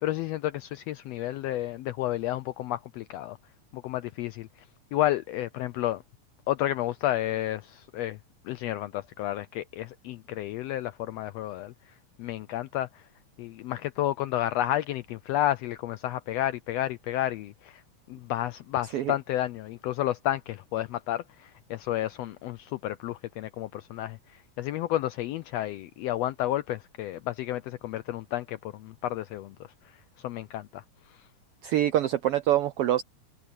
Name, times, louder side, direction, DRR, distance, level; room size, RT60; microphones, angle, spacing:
voice 1, 0.0-3.4 3.7-4.5 4.9-6.0 6.5-8.2 8.4-13.0 13.4-17.8 18.1-29.5 29.8-30.0 30.2-30.8 31.1-31.2, left 13 dB, 80° left, 1.5 m, -31 dB
voice 2, 31.6-33.0, right 12 dB, 80° right, 1.3 m, -25 dB
omnidirectional pair, 3.4 m